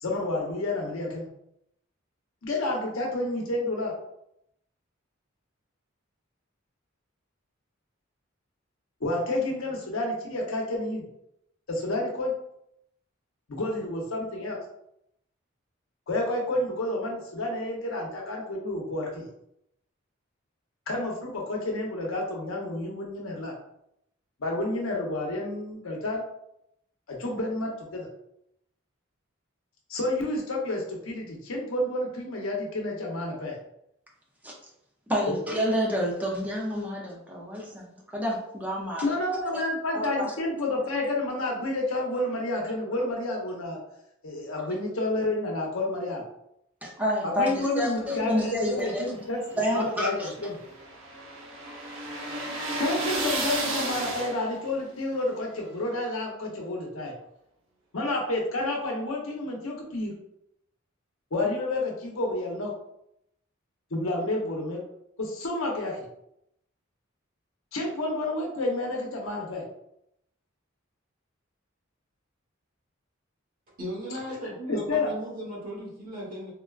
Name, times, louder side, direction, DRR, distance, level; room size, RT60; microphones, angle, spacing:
voice 1, 0.0-1.3 2.4-3.9 9.0-11.0 11.7-12.3 13.5-14.6 16.1-19.3 20.9-23.5 24.4-26.2 27.1-28.1 29.9-33.6 35.3-35.4 39.0-43.8 44.2-46.2 47.2-49.4 49.7-50.6 52.8-57.1 57.9-60.1 61.3-62.7 63.9-64.8 65.2-66.0 67.7-69.6 74.7-75.1, left 2 dB, 80° left, -1 dB, 0.8 m, -30 dB
voice 2, 35.1-39.1 39.5-39.6 39.9-40.1 46.8-49.1 49.6-50.3, equal, 10° right, -3 dB, 0.5 m, -29 dB
sound 1, 49.2-54.7, right 2 dB, 75° right, 0.7 m, -32 dB
voice 3, 73.8-76.5, equal, 45° right, -4 dB, 1.1 m, -36 dB
3.6 x 2.2 x 2.3 m, 0.78 s
head